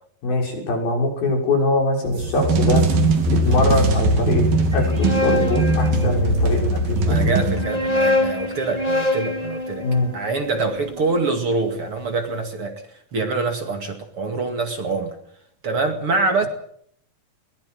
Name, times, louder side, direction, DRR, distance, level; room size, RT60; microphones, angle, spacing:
voice 1, 0.2-2.8 3.3-4.4 4.7-7.4 9.8-10.1, left 2 dB, 85° left, 1 dB, 8.1 m, -22 dB
sound 1, 2.1-8.0, right 2 dB, 80° right, 4.4 m, -20 dB
sound 2, 4.7-6.6 7.4-11.6, left 1 dB, 10° right, 2.7 m, -25 dB
voice 2, 7.0-9.9 10.1-12.8 13.1-15.2 15.6-16.5, right 3 dB, 45° right, 5 dB, 2.7 m, -25 dB
22.0 x 19.5 x 7.7 m, 0.67 s
omnidirectional pair, 4.1 m